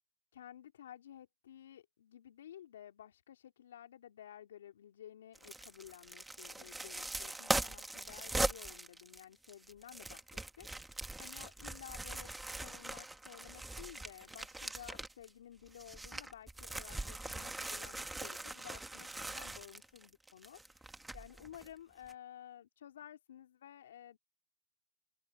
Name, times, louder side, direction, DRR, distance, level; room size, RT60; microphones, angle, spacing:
voice 1, 0.3-12.3 12.6-24.2, left 10 dB, 65° left, 3.0 m, -54 dB
sound 1, 5.4-15.3 15.7-21.7 22.1-22.2, right 2 dB, 5° right, 1.5 m, -41 dB
open air
hypercardioid pair, 145°, 0 cm